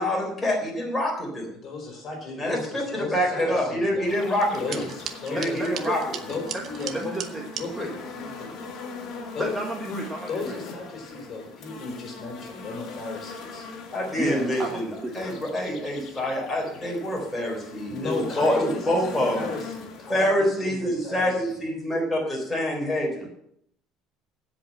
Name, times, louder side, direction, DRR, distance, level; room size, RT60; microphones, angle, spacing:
voice 1, 0.0-1.5 2.4-4.9 5.3-6.4 13.9-14.9 15.1-19.5 20.1-23.3, equal, 5° left, -2 dB, 3.7 m, -26 dB
voice 2, 1.6-4.2 4.6-5.6 6.3-7.2 7.5-8.5 9.3-9.6 10.3-13.6 14.3-14.8 15.1-15.4 17.9-21.6, left 3 dB, 30° left, 1 dB, 4.1 m, -35 dB
sound 1, 4.1-20.3, left 4 dB, 45° left, 2.4 m, -40 dB
sound 2, 4.4-7.7, right 8 dB, 40° right, 0.9 m, -37 dB
voice 3, 5.3-6.0 6.9-7.4 7.8-7.9 9.4-10.6 14.2-15.1 23.2-23.3, right 1 dB, 10° right, 0 dB, 1.3 m, -32 dB
16.0 x 5.3 x 7.6 m, 0.70 s
cardioid pair, 170°, 0 cm